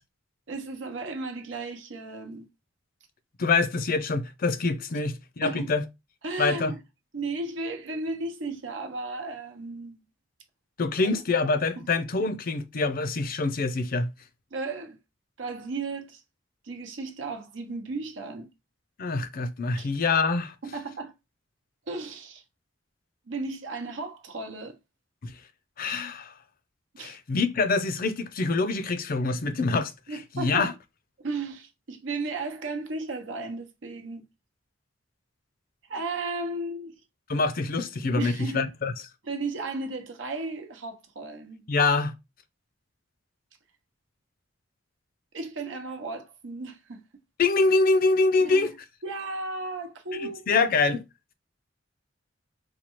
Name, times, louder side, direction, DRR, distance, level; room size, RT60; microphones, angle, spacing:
voice 1, 0.5-2.4 5.4-5.7 6.2-6.8 7.1-10.0 11.0-11.2 14.5-15.0 15.4-16.2 16.6-18.5 19.8-19.9 20.6-21.1 21.9-22.4 23.3-24.8 27.0-27.2 30.1-30.7 31.2-34.2 35.9-37.0 38.2-38.7 39.2-41.7 45.3-47.0 48.4-48.7 49.0-50.5, right 3 dB, 80° right, 0.8 m, -34 dB
voice 2, 3.4-5.8 6.4-6.7 10.8-14.1 19.0-20.5 25.2-25.3 25.8-26.3 27.0-29.9 30.3-30.7 37.3-38.9 41.7-42.1 47.4-48.7 50.1-51.0, left 3 dB, 50° left, 0.5 m, -25 dB
4.3 x 2.3 x 3.0 m
head